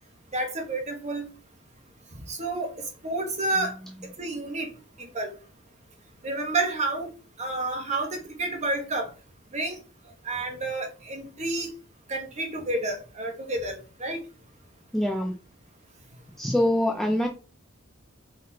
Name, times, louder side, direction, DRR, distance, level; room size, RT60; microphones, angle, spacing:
voice 1, 0.3-1.3 2.1-3.7 4.2-4.7 5.0-5.3 6.2-7.1 7.4-9.1 9.5-9.8 10.2-11.7 12.1-14.2, right 2 dB, 35° right, 0.9 m, -30 dB
voice 2, 14.9-15.4 16.4-17.3, left 1 dB, ahead, 0.3 m, -24 dB
3.7 x 3.6 x 2.7 m
head